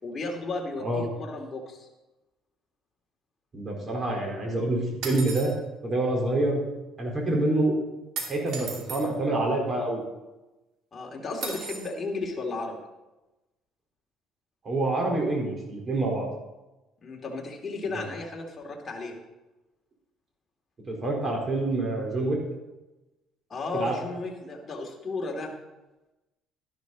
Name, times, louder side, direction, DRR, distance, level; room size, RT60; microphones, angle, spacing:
voice 1, 0.0-1.9 10.9-12.8 17.0-19.2 23.5-25.5, left 3 dB, 30° left, 0 dB, 2.8 m, -34 dB
voice 2, 3.5-5.5 5.8-6.6 7.0-7.7 8.3-10.0 14.6-16.3 17.9-18.0 20.8-22.4 23.7-23.9, right 2 dB, 35° right, 0 dB, 4.1 m, -27 dB
sound 1, 5.0-5.5 8.2-9.0 11.4-11.9, right 5 dB, 75° right, 2.4 m, -35 dB
12.5 x 11.5 x 4.1 m, 1.0 s
cardioid pair, 105°, 0 cm